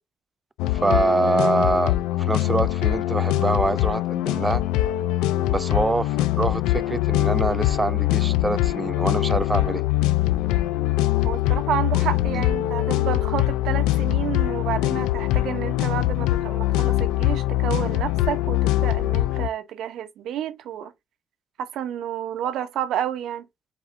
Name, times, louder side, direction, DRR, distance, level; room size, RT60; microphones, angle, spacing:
sound 1, 0.6-19.5, left 15 dB, 90° left, 0.3 m, -23 dB
voice 1, 0.7-4.6 5.5-9.8 12.3-12.4, right 3 dB, 20° right, 0.4 m, -25 dB
voice 2, 11.2-20.9 21.6-23.5, right 10 dB, 75° right, 0.8 m, -30 dB
4.4 x 3.9 x 2.6 m
supercardioid pair, 75°, 0 cm